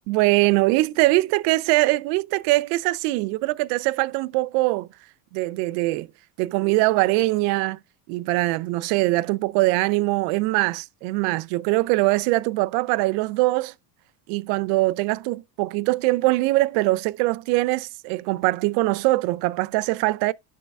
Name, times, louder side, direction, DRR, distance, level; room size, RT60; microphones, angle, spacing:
voice 1, 0.1-4.9 5.3-6.1 6.4-7.8 8.1-13.7 14.3-20.3, right 20 dB, 55° right, 0.5 m, -22 dB
11.0 x 3.7 x 3.4 m
supercardioid pair, 140°, 46 cm